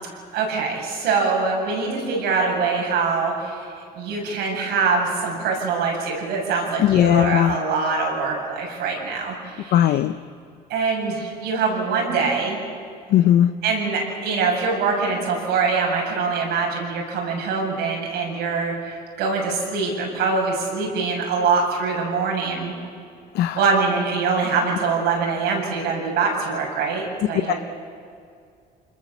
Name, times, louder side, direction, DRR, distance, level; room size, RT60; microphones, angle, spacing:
voice 1, 0.0-3.7 3.9-10.0 10.7-12.6 13.6-22.7 23.5-27.6, right 4 dB, 85° right, -1 dB, 7.4 m, -24 dB
voice 2, 6.8-7.6 9.7-10.2 13.1-13.5 23.3-23.6 27.5-27.6, left 11 dB, 70° left, 10 dB, 0.6 m, -17 dB
27.0 x 21.5 x 7.3 m, 2.3 s
cardioid pair, 110°, 17 cm